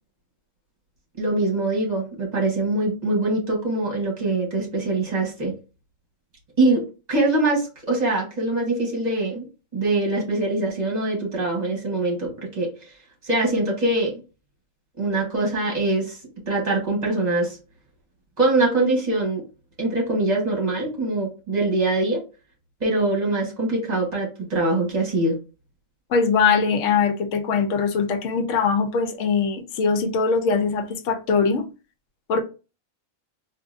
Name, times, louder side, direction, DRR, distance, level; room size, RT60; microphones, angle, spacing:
voice 1, 1.2-5.5 6.6-9.5 9.7-12.9 13.2-14.1 15.0-16.2 16.5-17.6 18.4-19.4 19.8-22.2 22.8-25.4, right 2 dB, 35° right, 1.3 m, -23 dB
voice 2, 26.1-31.6 32.3-32.4, left 5 dB, 75° left, 0.9 m, -21 dB
3.7 x 2.6 x 2.4 m
omnidirectional pair, 1.4 m